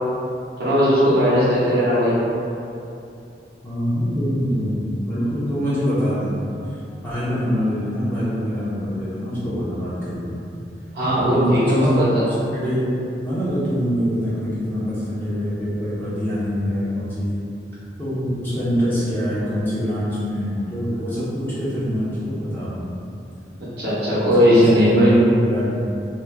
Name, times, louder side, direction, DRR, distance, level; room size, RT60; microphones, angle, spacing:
voice 1, 0.6-2.1 10.9-12.3 23.8-25.2, equal, 55° right, -10 dB, 1.0 m, -17 dB
voice 2, 3.6-6.8 7.0-10.3 11.1-12.0 12.5-17.3 18.0-22.9 24.3-25.8, equal, 10° left, -12 dB, 0.7 m, -24 dB
3.5 x 3.0 x 2.2 m, 2.7 s
head